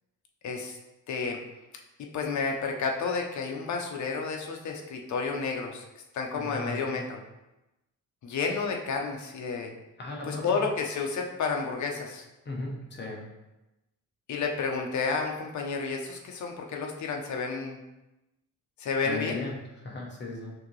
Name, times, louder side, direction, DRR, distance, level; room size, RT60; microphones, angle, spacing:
voice 1, 0.4-0.8 1.1-1.4 2.0-5.8 6.1-7.2 8.2-9.7 10.3-12.2 14.3-17.8 18.8-19.3, left 4 dB, 65° left, 2 dB, 0.7 m, -31 dB
voice 2, 6.4-7.1 10.0-10.6 12.4-13.3 19.0-20.5, left 2 dB, 35° left, -1 dB, 0.9 m, -37 dB
6.2 x 2.7 x 3.1 m, 0.97 s
wide cardioid pair, 170°, 32 cm